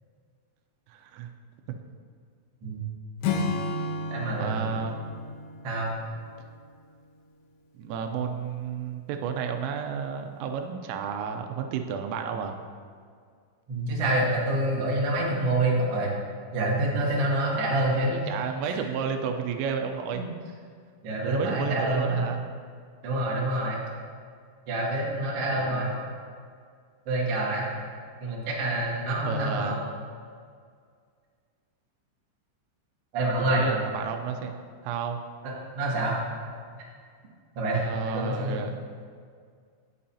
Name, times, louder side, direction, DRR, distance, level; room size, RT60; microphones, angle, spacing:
voice 1, 0.9-1.3 4.4-5.0 7.8-12.6 18.0-20.3 21.2-22.4 25.5-25.9 29.3-29.8 33.5-34.5 34.8-35.2 37.8-38.8, right 6 dB, 85° right, 5 dB, 3.3 m, -32 dB
Acoustic guitar / Strum, 3.2-6.7, left 3 dB, 80° left, 2.2 m, -32 dB
voice 2, 4.1-4.7 5.6-5.9 13.7-16.1 16.5-18.1 18.7-18.8 20.1-20.3 21.0-22.2 23.0-23.8 24.7-25.9 27.0-27.6 28.2-29.9 33.1-33.6 35.4-36.2 37.5-38.6, right 1 dB, 60° right, -4 dB, 1.6 m, -27 dB
17.5 x 7.6 x 2.8 m, 2.1 s
omnidirectional pair, 5.8 m